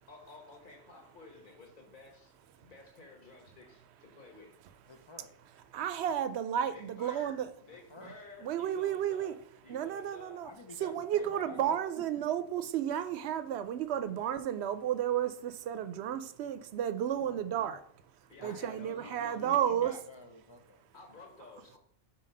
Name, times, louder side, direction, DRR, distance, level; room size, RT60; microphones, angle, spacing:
voice 1, 0.1-2.3 2.6-4.5 6.6-10.4 18.3-19.6 20.9-21.8, left 3 dB, 50° left, 2 dB, 1.5 m, -53 dB
voice 2, 4.9-5.3 7.7-8.1 10.4-11.8 18.4-20.9, left 2 dB, 30° left, 3 dB, 0.6 m, -50 dB
voice 3, 5.7-7.5 8.4-9.3 9.7-10.5 10.8-17.8 18.4-19.9, right 10 dB, 85° right, 11 dB, 0.9 m, -32 dB
5.7 x 4.3 x 5.1 m, 0.64 s
omnidirectional pair, 1.1 m